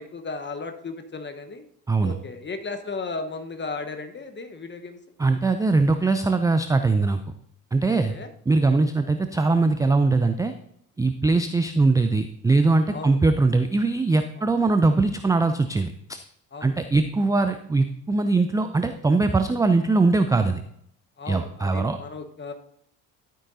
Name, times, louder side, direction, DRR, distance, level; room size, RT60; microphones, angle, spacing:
voice 1, 0.0-1.7 2.0-5.0 7.8-8.3 12.9-13.2 14.4-14.5 16.5-16.7 21.2-22.5, left 3 dB, 20° left, 7 dB, 1.2 m, -35 dB
voice 2, 5.2-7.2 7.7-8.1 8.5-10.5 11.0-16.2 16.6-20.6 21.3-22.0, right 3 dB, 10° right, 8 dB, 0.4 m, -21 dB
12.0 x 8.9 x 2.7 m, 0.70 s
figure-of-eight pair, 55°, 50 cm